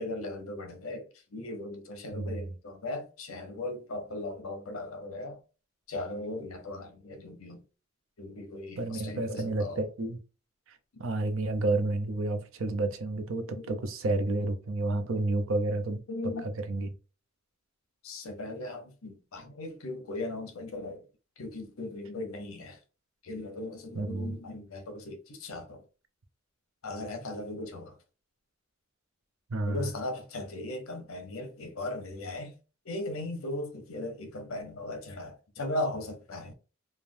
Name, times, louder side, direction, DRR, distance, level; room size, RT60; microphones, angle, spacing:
voice 1, 0.0-5.4 5.9-7.6 8.2-9.8 10.9-11.0 13.6-13.8 16.1-16.5 18.0-21.0 21.4-22.8 23.2-25.8 26.8-28.0 29.7-32.6 32.8-36.5, left 2 dB, 80° left, 0.8 m, -38 dB
voice 2, 2.1-2.5 8.8-10.2 11.0-16.0 16.4-16.9 23.9-24.4 29.5-29.9, right 2 dB, 70° right, 0.6 m, -30 dB
3.2 x 2.2 x 2.6 m
head